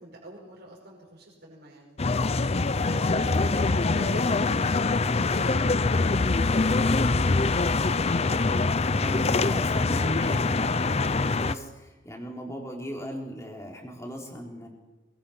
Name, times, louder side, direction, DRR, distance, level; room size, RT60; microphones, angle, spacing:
voice 1, 0.0-2.0 2.5-7.0 7.4-7.9, right 1 dB, 55° right, -4 dB, 5.6 m, -46 dB
sound 1, 2.0-11.5, left 3 dB, 35° left, 0.6 m, -24 dB
voice 2, 3.2-3.7 8.1-8.4 9.0-14.7, equal, 15° left, 0 dB, 4.1 m, -38 dB
23.0 x 22.0 x 5.9 m, 1.1 s
head